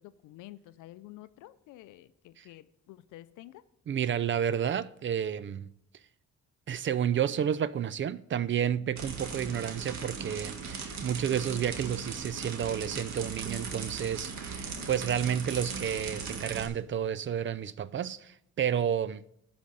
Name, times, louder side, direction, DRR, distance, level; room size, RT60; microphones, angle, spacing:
voice 1, 0.0-3.6 8.8-8.9 14.5-15.0, left 15 dB, 85° left, 0.5 m, -50 dB
voice 2, 3.9-5.7 6.7-19.3, right 9 dB, 40° right, 0.4 m, -31 dB
sound 1, 9.0-16.7, right 5 dB, 65° right, 1.8 m, -38 dB
11.5 x 5.2 x 6.9 m
cardioid pair, 90°, 30 cm